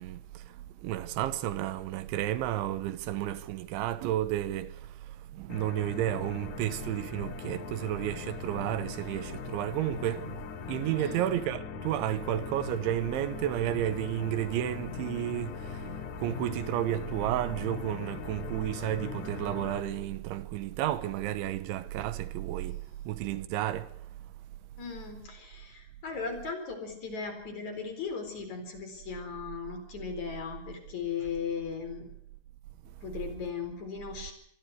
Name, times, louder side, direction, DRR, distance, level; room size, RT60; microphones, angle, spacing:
voice 1, 0.0-4.8 5.3-10.4 10.7-15.9 16.2-22.8 23.1-23.9, right 13 dB, 85° right, 3.5 m, -32 dB
sound 1, 5.5-19.8, left 7 dB, 60° left, 2.5 m, -40 dB
voice 2, 24.8-32.1 33.0-34.3, left 5 dB, 40° left, 5.2 m, -37 dB
26.0 x 23.0 x 4.8 m
omnidirectional pair, 5.3 m